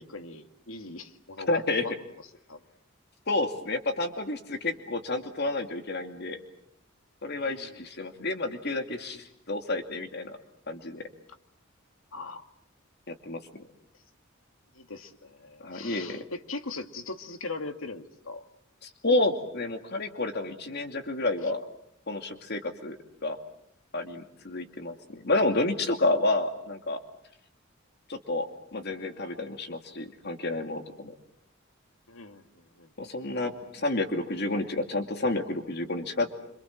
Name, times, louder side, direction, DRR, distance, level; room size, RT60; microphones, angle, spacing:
voice 1, 0.0-1.9 2.5-2.6 7.4-7.9 12.1-12.4 14.7-18.4 21.4-21.5 32.1-32.9, left 3 dB, 85° left, 8 dB, 2.3 m, -40 dB
voice 2, 1.5-1.8 3.3-6.4 7.2-10.4 10.7-11.0 13.1-13.7 15.6-16.2 18.8-21.6 22.1-23.0 23.2-23.4 23.9-27.0 28.1-28.5 28.7-31.1 33.0-36.3, left 2 dB, 55° left, 6 dB, 2.5 m, -30 dB
27.0 x 26.0 x 7.4 m, 0.71 s
head